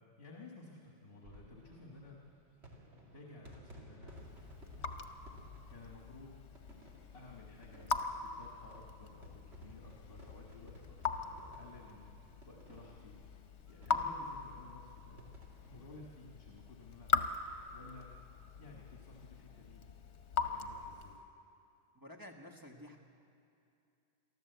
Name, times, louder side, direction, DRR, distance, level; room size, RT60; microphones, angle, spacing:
voice 1, 0.0-2.3 2.7-4.2 4.8-6.4 7.1-13.1 13.7-15.3 15.7-17.3 17.7-18.1 18.6-19.9 20.4-21.2, left 2 dB, 55° left, -1 dB, 1.9 m, -55 dB
sound 1, 1.1-17.1 17.5-17.6 17.7-17.8 19.1-19.4, equal, 65° right, 2.6 m, -58 dB
Raindrop / Drip, 4.1-21.3, left 5 dB, 75° left, 1.2 m, -41 dB
voice 2, 21.9-23.0, left 1 dB, 20° right, 1 dB, 1.5 m, -51 dB
23.0 x 14.0 x 8.0 m, 2.6 s
omnidirectional pair, 1.2 m